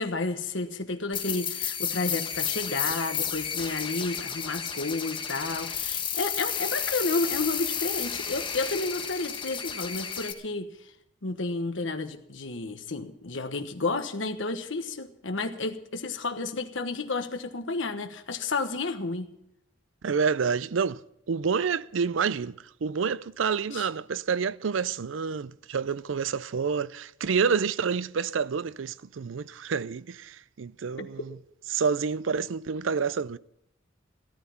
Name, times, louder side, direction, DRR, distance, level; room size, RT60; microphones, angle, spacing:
voice 1, 0.0-10.7 11.2-19.3 23.7-23.9 31.0-31.1, left 3 dB, 75° left, 1.2 m, -31 dB
sound 1, 1.1-10.3, left 7 dB, 25° left, 1.2 m, -32 dB
voice 2, 20.0-21.0 21.3-31.4 31.7-33.4, right 6 dB, 85° right, 0.5 m, -28 dB
15.0 x 13.5 x 5.7 m
head